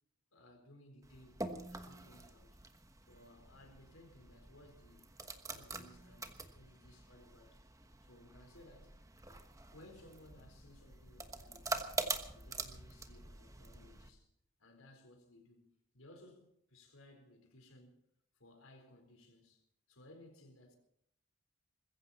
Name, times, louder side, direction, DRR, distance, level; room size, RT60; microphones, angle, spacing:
voice 1, 0.3-1.4 1.7-2.6 3.1-5.2 5.5-7.6 8.0-9.0 9.7-11.9 12.2-14.3 14.6-15.7 15.9-18.0 18.3-20.8, left 1 dB, 90° left, 4.2 m, -60 dB
sound 1, 1.0-14.1, right 3 dB, 15° right, 1.2 m, -45 dB
21.0 x 15.5 x 4.2 m
head